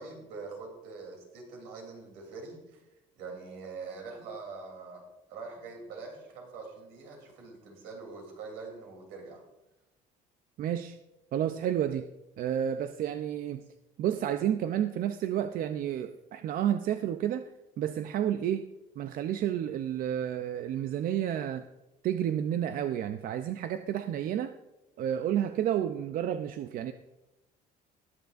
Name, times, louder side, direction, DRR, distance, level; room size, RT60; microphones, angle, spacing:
voice 1, 0.0-2.8 3.2-5.0 5.3-9.4, right 4 dB, 85° right, 1 dB, 3.2 m, -44 dB
voice 2, 10.6-11.0 11.3-12.1 12.4-13.6 14.0-17.5 17.8-18.7 19.0-21.6 22.0-24.5 25.0-26.9, right 10 dB, 60° right, 9 dB, 0.5 m, -30 dB
19.5 x 6.9 x 2.5 m, 0.96 s
cardioid pair, 95°, 17 cm